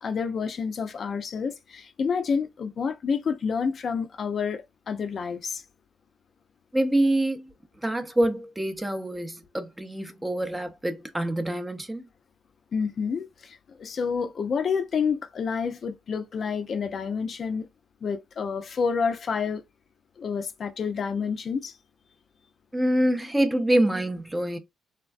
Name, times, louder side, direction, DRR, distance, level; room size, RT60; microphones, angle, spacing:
voice 1, 0.0-5.6 12.7-17.7 18.0-19.6 20.2-21.8, left 6 dB, 50° left, 0.4 m, -29 dB
voice 2, 6.7-7.5 7.8-12.0 22.7-24.6, right 1 dB, 15° right, 0.5 m, -25 dB
3.3 x 2.1 x 2.3 m
cardioid pair, 90°, 0 cm